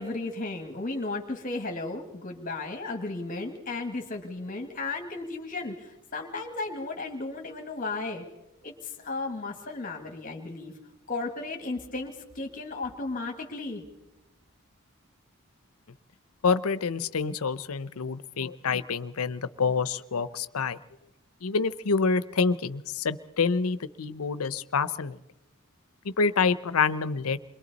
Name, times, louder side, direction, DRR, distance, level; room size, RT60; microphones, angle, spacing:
voice 1, 0.0-8.3 8.6-10.7 11.1-13.8, left 3 dB, 40° left, 3 dB, 1.7 m, -34 dB
voice 2, 16.4-20.8 21.4-25.2 26.0-27.4, left 5 dB, 85° left, 15 dB, 0.7 m, -27 dB
29.0 x 22.5 x 4.1 m, 0.96 s
head